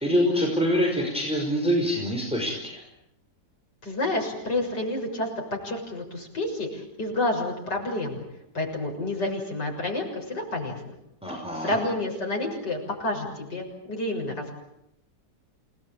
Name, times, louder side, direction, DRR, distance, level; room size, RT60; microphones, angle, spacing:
voice 1, 0.0-2.8 11.2-11.8, equal, 5° right, 0 dB, 5.6 m, -25 dB
voice 2, 3.8-5.3 5.6-8.2 8.5-10.8 11.6-14.4, left 2 dB, 90° left, 2 dB, 7.4 m, -29 dB
28.5 x 19.0 x 9.1 m, 0.81 s
omnidirectional pair, 1.8 m